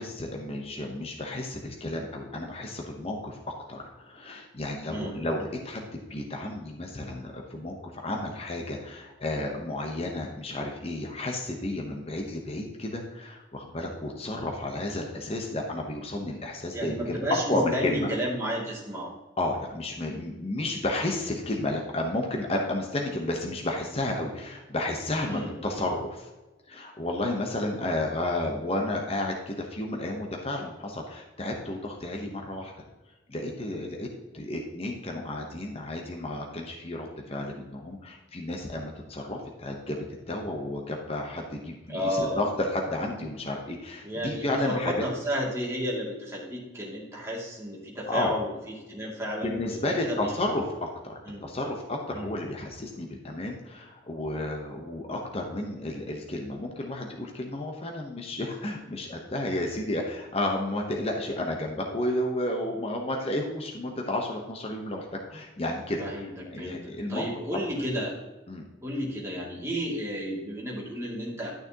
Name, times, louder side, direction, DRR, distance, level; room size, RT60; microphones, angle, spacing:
voice 1, 0.0-17.2 17.5-18.1 19.4-26.3 26.7-32.7 33.3-34.1 34.3-40.0 40.3-44.9 48.1-48.4 49.4-67.3 68.5-68.7, left 1 dB, 30° left, 1 dB, 1.0 m, -32 dB
voice 2, 4.9-5.2 16.7-19.1 25.2-25.6 41.9-42.5 44.0-50.3 51.3-51.5 52.1-52.4 66.0-66.3 66.5-68.2 68.8-71.5, equal, 15° right, -5 dB, 2.5 m, -32 dB
11.5 x 6.4 x 2.9 m, 1.1 s
head